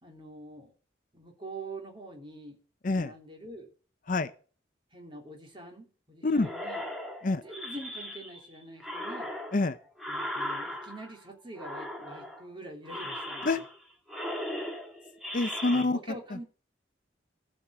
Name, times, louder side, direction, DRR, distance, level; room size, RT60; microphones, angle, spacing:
voice 1, 0.0-0.7 1.1-2.6 2.9-3.7 4.9-6.8 7.3-9.3 10.1-13.6 15.7-16.4, right 2 dB, 25° right, 3.2 m, -45 dB
sound 1, 6.4-8.5 8.8-11.2 11.6-12.5 12.8-13.8 14.1-15.8, left 1 dB, ahead, 2.0 m, -38 dB
voice 2, 15.3-16.0, left 3 dB, 45° left, 0.6 m, -26 dB
14.5 x 6.2 x 6.5 m
head